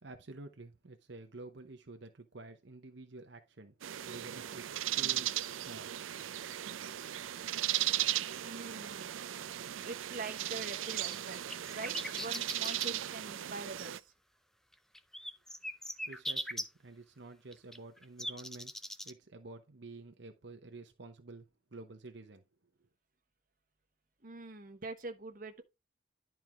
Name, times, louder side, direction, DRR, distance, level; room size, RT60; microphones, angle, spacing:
voice 1, 0.0-5.9 16.1-22.4 22.8-22.9, right 2 dB, 65° right, 0.8 m, -50 dB
sound 1, 3.8-14.0, right 13 dB, 90° right, 0.4 m, -37 dB
voice 2, 8.4-9.2 9.8-11.4 11.7-13.9 24.2-25.6, right 3 dB, 45° right, 1.1 m, -44 dB
sound 2, 10.4-12.9 14.9-16.6 17.5-19.1, equal, ahead, 0.4 m, -40 dB
11.0 x 4.5 x 3.5 m
head